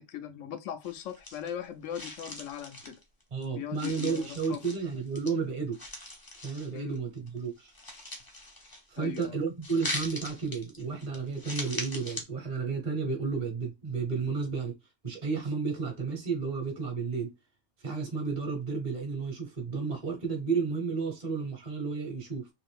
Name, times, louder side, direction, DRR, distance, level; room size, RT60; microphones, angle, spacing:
voice 1, 0.0-3.0 3.5-4.6 6.7-7.0 9.0-9.4, left 9 dB, 90° left, 1.0 m, -39 dB
sound 1, 0.8-1.7 1.9-3.4 3.7-5.3 5.7-7.0 7.3-9.3 9.6-12.2, left 1 dB, 25° left, 0.6 m, -40 dB
voice 2, 3.3-5.8 6.4-7.7 8.9-14.8 15.0-17.3 17.8-22.5, right 5 dB, 35° right, 0.9 m, -32 dB
2.7 x 2.5 x 3.3 m
omnidirectional pair, 1.3 m